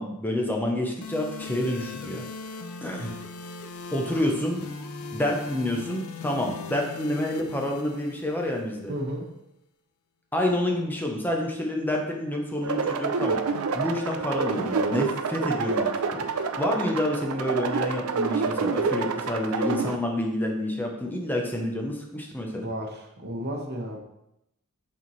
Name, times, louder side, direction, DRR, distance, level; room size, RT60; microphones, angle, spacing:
voice 1, 0.0-2.3 2.8-3.1 3.9-4.6 5.1-8.9 10.3-13.4 13.7-22.7, left 1 dB, 10° left, 0 dB, 0.8 m, -28 dB
sound 1, 1.0-9.0, left 4 dB, 80° left, 0.6 m, -39 dB
voice 2, 8.9-9.3 22.5-24.0, equal, 50° right, 1 dB, 1.1 m, -33 dB
sound 2, 12.6-20.0, right 5 dB, 75° right, 0.5 m, -28 dB
6.6 x 4.4 x 3.2 m, 0.84 s
head